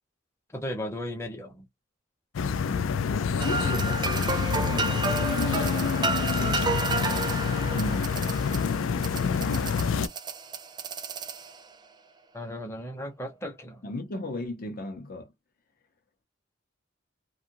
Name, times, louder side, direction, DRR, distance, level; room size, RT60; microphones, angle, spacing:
voice 1, 0.5-1.6 12.3-13.8, left 1 dB, 15° left, 0.8 m, -36 dB
sound 1, 2.3-10.1, left 6 dB, 85° left, 0.4 m, -27 dB
voice 2, 3.3-7.4 7.7-8.4 13.8-15.3, left 2 dB, 50° left, 0.7 m, -36 dB
sound 2, 3.4-11.8, right 3 dB, 20° right, 0.4 m, -31 dB
2.6 x 2.4 x 2.8 m
head